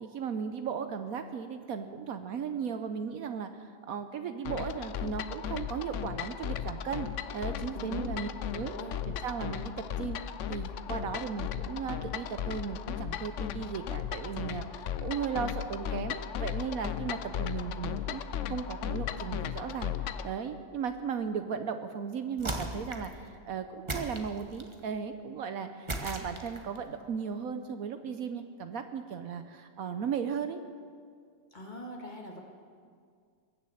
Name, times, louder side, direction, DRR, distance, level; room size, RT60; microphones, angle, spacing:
voice 1, 0.0-8.7 9.1-10.2 10.5-18.2 18.5-30.6, right 6 dB, 65° right, 8 dB, 1.1 m, -36 dB
sound 1, 4.4-20.3, left 10 dB, 65° left, 0.8 m, -36 dB
voice 2, 7.7-8.1 8.6-8.9 31.5-32.4, equal, 30° left, 1 dB, 1.7 m, -42 dB
sound 2, 22.4-23.2 23.9-24.8 25.9-26.8, right 2 dB, 20° right, 1.0 m, -36 dB
21.5 x 7.2 x 7.8 m, 2.1 s
omnidirectional pair, 1.7 m